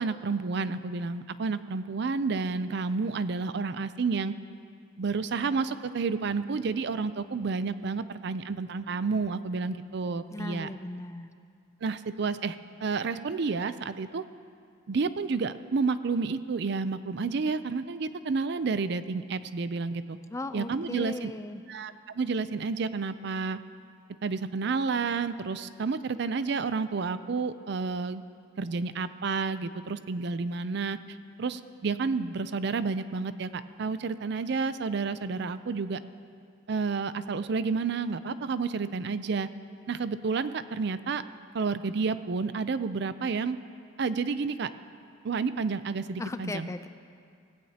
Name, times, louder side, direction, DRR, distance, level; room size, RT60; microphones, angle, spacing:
voice 1, 0.0-4.3 5.0-10.7 11.8-14.2 14.9-20.2 20.5-21.3 21.7-23.6 24.2-28.2 28.6-31.0 31.4-36.0 36.7-39.5 39.9-41.2 41.5-43.6 44.0-44.7 45.2-46.7, right 4 dB, 55° right, 13 dB, 0.4 m, -30 dB
voice 2, 10.3-11.3 20.3-21.6 46.2-46.9, left 2 dB, 15° left, 10 dB, 0.4 m, -37 dB
18.0 x 15.5 x 2.8 m, 2.3 s
head